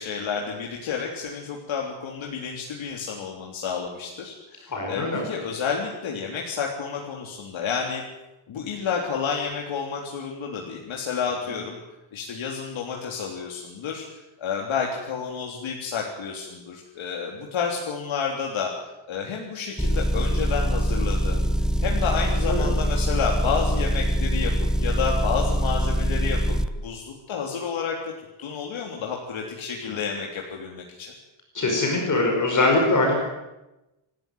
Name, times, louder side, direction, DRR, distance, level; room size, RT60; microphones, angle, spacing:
voice 1, 0.0-8.0 8.5-11.8 12.1-14.0 14.4-18.7 19.1-21.4 21.8-24.5 24.8-26.6 26.8-31.1, left 6 dB, 70° left, 0 dB, 3.5 m, -30 dB
voice 2, 4.7-5.2 22.5-22.7 29.8-30.0 31.5-33.2, left 2 dB, 40° left, 1 dB, 5.4 m, -22 dB
Motor vehicle (road) / Engine, 19.8-26.7, equal, ahead, 0.7 m, -23 dB
28.5 x 13.5 x 9.4 m, 0.99 s
wide cardioid pair, 160°, 48 cm